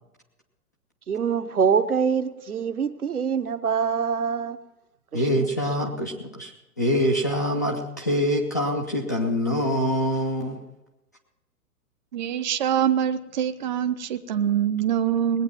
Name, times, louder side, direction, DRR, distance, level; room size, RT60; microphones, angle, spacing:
voice 1, 1.1-4.6 5.1-5.5, right 6 dB, 70° right, 1.2 m, -24 dB
voice 2, 5.1-6.1 6.4-6.5 6.8-10.6, equal, 15° left, 0.4 m, -24 dB
voice 3, 12.1-15.4, right 9 dB, 30° right, 0.6 m, -24 dB
19.5 x 8.8 x 5.8 m
figure-of-eight pair, 120°, 46 cm